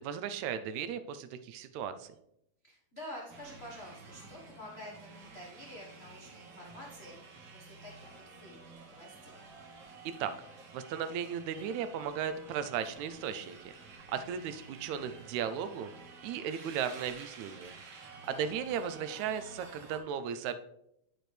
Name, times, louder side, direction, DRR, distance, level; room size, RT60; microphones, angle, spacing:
voice 1, 0.0-2.2 10.2-10.3 10.7-13.8 14.1-15.9 16.2-17.8 18.3-20.5, right 8 dB, 80° right, 11 dB, 1.9 m, -36 dB
voice 2, 2.6-9.4 14.7-14.8 18.2-18.5, equal, 65° left, -4 dB, 0.6 m, -49 dB
sound 1, 3.3-20.0, right 4 dB, 60° right, 2.1 m, -52 dB
9.2 x 6.2 x 3.3 m, 0.79 s
omnidirectional pair, 3.3 m